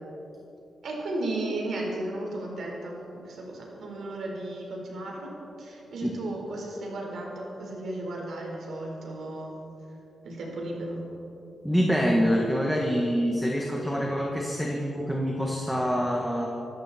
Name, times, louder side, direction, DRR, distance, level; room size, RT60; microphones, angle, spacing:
voice 1, 0.8-5.3 5.6-9.5 10.2-11.0, right 2 dB, 65° right, -1 dB, 4.5 m, -34 dB
voice 2, 11.6-16.5, equal, ahead, -2 dB, 1.4 m, -26 dB
25.5 x 13.0 x 4.3 m, 3.0 s
wide cardioid pair, 175°, 0 cm